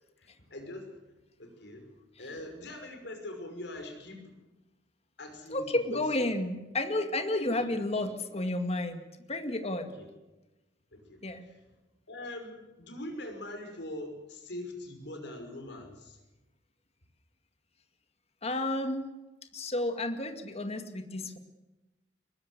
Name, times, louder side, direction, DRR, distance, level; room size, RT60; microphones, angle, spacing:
voice 1, 0.2-0.9 1.4-4.4 5.2-6.3 7.5-8.1 10.0-10.1 10.9-11.6 12.1-16.2, left 1 dB, 65° left, 5 dB, 5.8 m, -43 dB
voice 2, 5.5-10.0 11.2-11.4 18.4-19.1 19.5-21.4, left 2 dB, 35° left, 7 dB, 2.1 m, -31 dB
23.0 x 21.0 x 8.2 m, 1.1 s
head